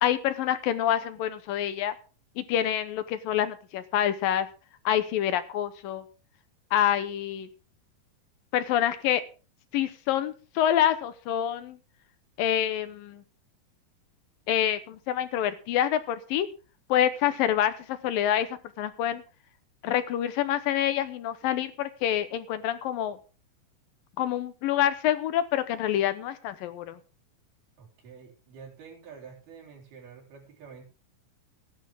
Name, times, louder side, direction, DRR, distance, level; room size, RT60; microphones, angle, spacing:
voice 1, 0.0-1.9 2.4-4.5 4.9-6.0 6.7-7.5 8.5-9.2 9.7-11.8 12.4-13.2 14.5-16.5 16.9-18.5 18.8-19.2 19.8-23.2 24.2-27.0, left 11 dB, 75° left, 12 dB, 2.5 m, -27 dB
voice 2, 27.8-30.8, right 6 dB, 80° right, -1 dB, 5.9 m, -48 dB
16.0 x 11.0 x 3.6 m, 0.34 s
omnidirectional pair, 4.4 m